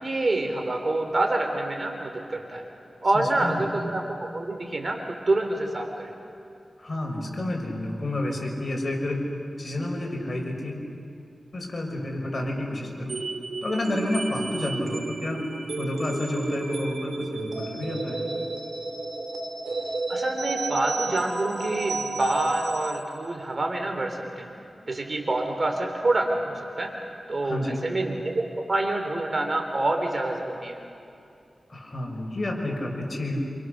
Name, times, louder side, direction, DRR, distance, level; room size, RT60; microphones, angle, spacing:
voice 1, 0.0-2.7 3.0-6.1 20.1-24.5 24.9-27.0 27.3-30.8, right 2 dB, 50° right, 3 dB, 3.7 m, -27 dB
voice 2, 3.1-3.7 6.8-9.2 9.6-10.9 11.5-13.2 13.6-15.4 15.8-18.3 27.4-27.8 31.7-33.4, left 1 dB, 45° left, 0 dB, 5.9 m, -30 dB
sound 1, 13.1-23.0, right 3 dB, 80° right, 2.5 m, -32 dB
27.5 x 27.5 x 6.7 m, 2.7 s
wide cardioid pair, 65°, 0 cm